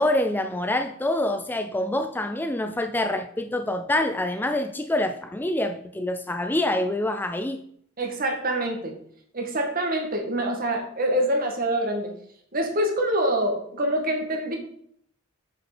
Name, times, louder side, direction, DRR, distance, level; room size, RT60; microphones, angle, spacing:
voice 1, 0.0-7.6, left 1 dB, 10° left, 0.4 m, -26 dB
voice 2, 8.0-8.9 9.3-12.1 12.5-14.6, right 1 dB, 45° right, 1.9 m, -25 dB
7.7 x 5.0 x 6.7 m
head